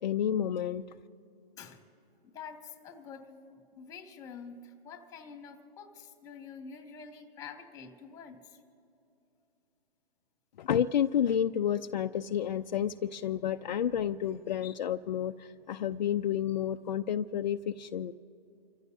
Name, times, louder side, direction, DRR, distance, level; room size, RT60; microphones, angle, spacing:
voice 1, 0.0-0.8 10.6-18.2, left 9 dB, 50° left, 6 dB, 0.5 m, -30 dB
voice 2, 2.2-8.6, left 6 dB, 10° left, 4 dB, 1.8 m, -47 dB
30.0 x 15.0 x 2.7 m, 2.9 s
hypercardioid pair, 145°, 30 cm